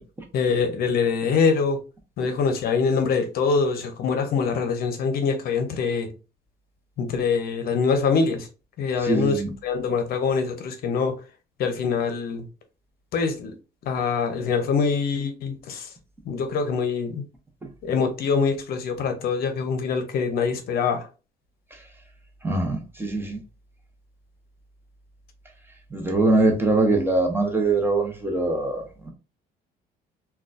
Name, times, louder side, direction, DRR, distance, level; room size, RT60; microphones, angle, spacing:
voice 1, 0.3-1.8 2.2-6.1 7.0-8.5 8.8-11.2 11.6-12.5 13.1-13.5 13.9-15.9 16.3-17.2 17.8-21.1, left 5 dB, 65° left, 0.6 m, -24 dB
voice 2, 9.0-9.5 21.7-21.8 22.4-23.4 25.9-29.1, right 2 dB, 15° right, 0.7 m, -23 dB
3.8 x 2.3 x 2.5 m
cardioid pair, 110°, 17 cm